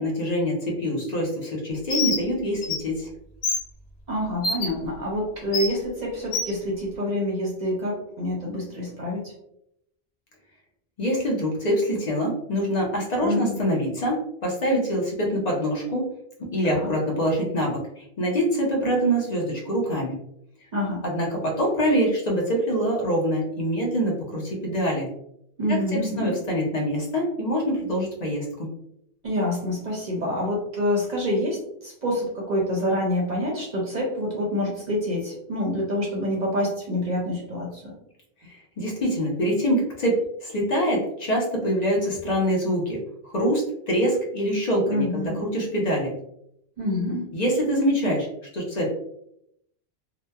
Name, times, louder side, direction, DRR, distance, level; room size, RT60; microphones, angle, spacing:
voice 1, 0.0-3.1 11.0-16.1 16.4-20.2 21.0-25.1 25.7-25.8 26.2-28.7 38.5-46.1 47.3-48.3 48.5-49.0, equal, 45° left, -2 dB, 0.7 m, -25 dB
Bird, 1.9-2.2 2.6-2.8 3.4-3.6 4.4-4.7 5.5-5.7 6.3-6.5, left 3 dB, 90° left, 0.9 m, -25 dB
voice 2, 4.1-9.3 13.2-13.6 16.6-16.9 20.7-21.0 25.6-26.4 29.2-37.9 44.9-45.4 46.8-47.3, left 1 dB, 50° right, -2 dB, 0.6 m, -27 dB
2.8 x 2.1 x 2.2 m, 0.76 s
omnidirectional pair, 1.1 m